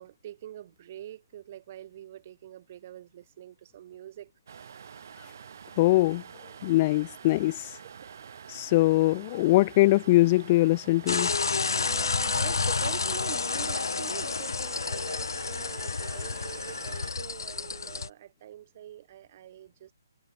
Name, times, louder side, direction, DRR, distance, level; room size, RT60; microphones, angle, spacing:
voice 1, 0.0-4.3 7.8-7.9 11.7-19.9, right 12 dB, 30° right, 3.7 m, -44 dB
sound 1, 4.5-17.1, right 7 dB, 50° right, 6.6 m, -47 dB
voice 2, 5.8-6.2 6.6-7.8 8.5-11.3, left 18 dB, 20° left, 0.5 m, -22 dB
sound 2, 11.1-18.1, left 4 dB, 90° left, 0.4 m, -30 dB
hypercardioid pair, 170°, 2 cm